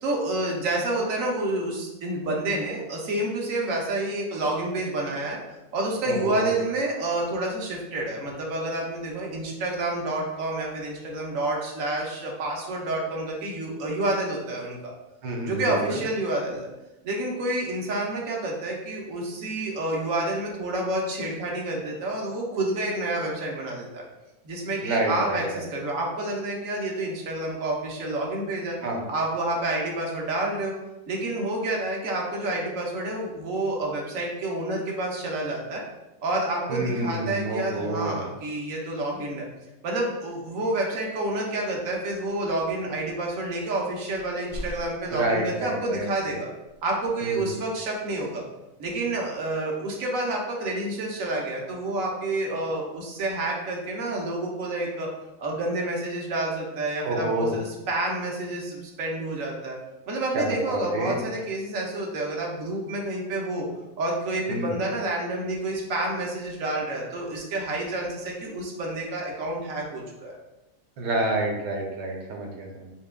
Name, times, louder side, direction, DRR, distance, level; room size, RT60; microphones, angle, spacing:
voice 1, 0.0-5.4 5.7-14.9 15.5-16.7 17.0-24.0 24.4-28.8 29.1-30.7 31.1-35.8 36.2-39.5 39.8-46.5 46.8-48.4 48.8-55.1 55.4-59.8 60.1-63.7 64.0-70.4, right 2 dB, 60° right, -1 dB, 1.0 m, -29 dB
voice 2, 6.1-6.5 15.2-16.0 24.8-25.6 28.8-29.0 36.7-38.2 45.1-46.3 47.2-47.5 57.0-57.6 60.3-61.2 64.5-64.7 71.0-72.9, right 1 dB, 90° right, 1 dB, 1.3 m, -28 dB
sound 1, 44.1-45.8 46.6-46.8, left 1 dB, 30° right, 0.8 m, -40 dB
5.9 x 2.3 x 2.2 m, 0.98 s
omnidirectional pair, 1.8 m